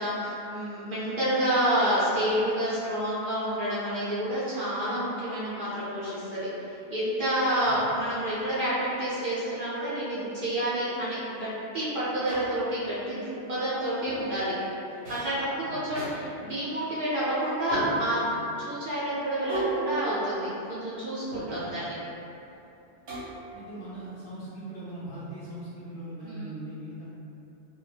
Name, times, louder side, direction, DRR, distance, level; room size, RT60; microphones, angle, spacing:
voice 1, 0.0-6.5 6.9-11.5 11.7-14.5 15.1-18.3 18.6-21.9 26.2-26.6, right 1 dB, 60° right, -10 dB, 0.6 m, -29 dB
sound 1, 12.3-12.9 14.1-14.4 15.0-15.4 15.9-16.1 17.7-18.3 19.5-20.8 21.3-21.8 23.1-23.7, right 2 dB, 75° right, 0.9 m, -35 dB
voice 2, 23.5-27.0, right 1 dB, 55° left, -10 dB, 0.8 m, -40 dB
2.2 x 2.0 x 3.1 m, 2.8 s
omnidirectional pair, 1.2 m